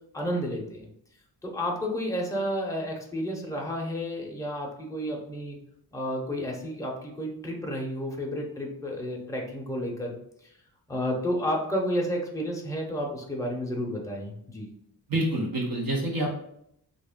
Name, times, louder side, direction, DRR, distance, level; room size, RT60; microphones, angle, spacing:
voice 1, 0.1-0.9 1.4-5.6 5.9-10.2 10.4-10.5 10.9-14.7, equal, 10° left, -1 dB, 0.7 m, -31 dB
voice 2, 15.1-16.3, right 1 dB, 55° right, -2 dB, 0.9 m, -27 dB
3.2 x 2.5 x 3.5 m, 0.73 s
wide cardioid pair, 115°, 40 cm